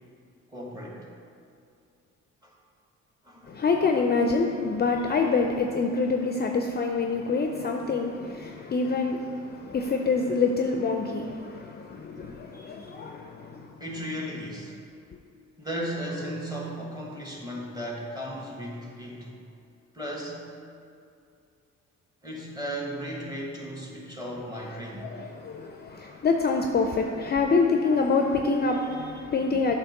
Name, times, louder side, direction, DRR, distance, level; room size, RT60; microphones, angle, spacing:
voice 1, 0.5-1.1 2.4-2.5 3.2-3.6 13.8-14.8 15.6-19.3 19.9-20.5 22.2-25.3, equal, 15° right, -2 dB, 1.5 m, -35 dB
voice 2, 3.5-13.7 25.2-29.8, left 4 dB, 35° left, 3 dB, 0.5 m, -26 dB
8.3 x 2.9 x 5.9 m, 2.5 s
cardioid pair, 90°, 30 cm